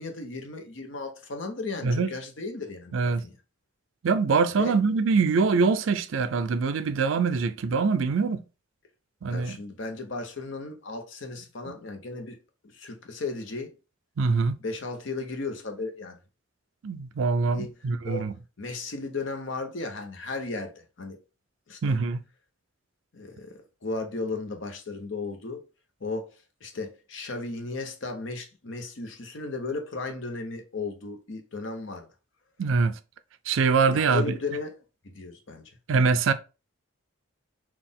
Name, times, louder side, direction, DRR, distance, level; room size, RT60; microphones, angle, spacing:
voice 1, 0.0-3.3 4.6-4.8 9.3-12.4 12.6-13.7 14.6-16.2 17.5-17.7 18.0-21.2 21.7-21.9 23.1-23.5 23.8-25.6 26.0-26.3 26.6-32.1 33.9-34.8 35.0-35.7, left 3 dB, 65° left, 0.8 m, -35 dB
voice 2, 2.9-3.2 4.0-8.4 9.2-9.6 14.2-14.5 16.8-18.3 21.8-22.2 32.6-33.0 33.5-34.3 35.9-36.3, right 4 dB, 70° right, 0.4 m, -24 dB
4.1 x 2.4 x 3.6 m
head